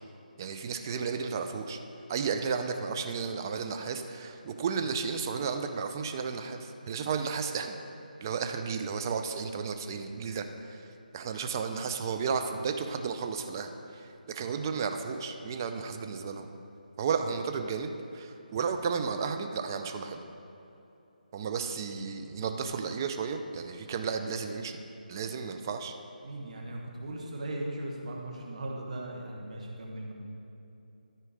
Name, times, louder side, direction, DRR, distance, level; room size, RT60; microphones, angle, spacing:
voice 1, 0.4-1.8 2.1-7.8 8.2-10.8 11.1-16.5 17.0-20.2 21.3-24.8 25.1-26.0, right 5 dB, 20° right, 6 dB, 0.4 m, -33 dB
voice 2, 26.2-30.1, right 1 dB, 45° right, 0 dB, 1.5 m, -38 dB
13.0 x 4.5 x 5.0 m, 2.9 s
figure-of-eight pair, 165°, 5 cm